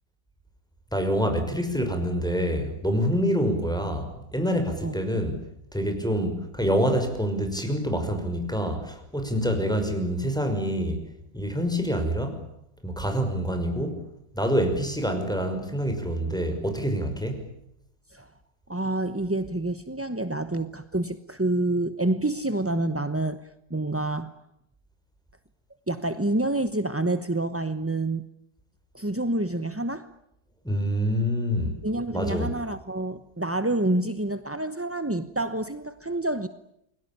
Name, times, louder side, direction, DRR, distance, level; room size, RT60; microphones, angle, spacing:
voice 1, 0.9-11.0 11.3-12.4 12.8-14.0 14.3-17.5 30.6-31.8 32.1-32.6, equal, ahead, 5.8 m, -26 dB
voice 2, 18.7-23.4 23.7-24.3 25.9-28.2 28.9-30.1 31.8-36.5, right 2 dB, 15° right, 0.5 m, -28 dB
29.5 x 22.5 x 8.8 m
omnidirectional pair, 2.0 m